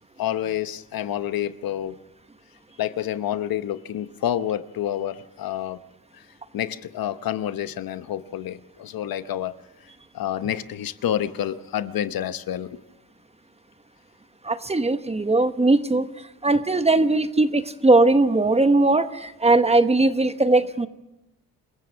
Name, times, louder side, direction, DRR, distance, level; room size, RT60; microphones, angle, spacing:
voice 1, 0.2-2.0 2.8-5.8 6.1-6.2 6.5-9.5 9.8-12.8, left 11 dB, 70° left, 12 dB, 0.9 m, -28 dB
voice 2, 14.4-16.1 16.4-20.9, right 2 dB, 15° right, 10 dB, 1.0 m, -19 dB
28.0 x 15.5 x 6.2 m, 0.93 s
cardioid pair, 110°, 37 cm